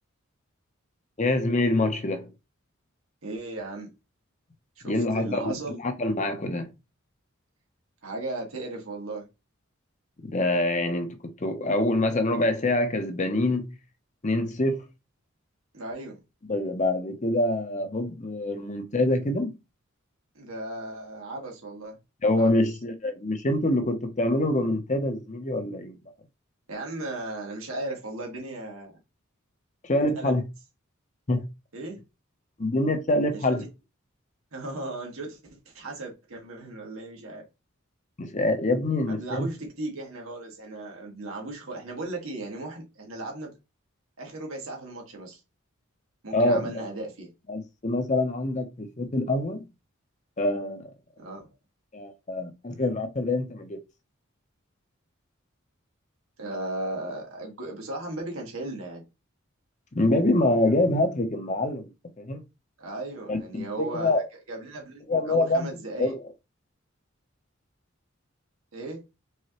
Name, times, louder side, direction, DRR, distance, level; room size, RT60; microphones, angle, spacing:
voice 1, 1.2-2.3 4.8-6.8 10.2-13.7 14.2-14.8 16.5-19.5 22.2-26.0 29.8-30.4 31.3-31.4 32.6-33.6 38.2-39.5 46.3-46.7 47.5-49.6 50.4-50.9 51.9-53.8 59.9-61.9 62.2-62.4 63.3-64.2 65.1-65.7 66.0-66.2, left 2 dB, 35° left, 0.8 m, -25 dB
voice 2, 3.2-3.9 4.8-5.8 8.0-9.3 15.7-16.2 20.4-22.0 22.4-22.5 26.7-28.9 30.2-30.4 31.7-32.0 33.3-33.6 34.5-37.4 39.1-43.5 44.2-45.4 46.2-47.3 51.2-51.5 56.4-59.0 62.8-64.2 64.5-66.1 68.7-69.0, right 2 dB, 90° right, 2.0 m, -36 dB
4.8 x 3.8 x 3.0 m
head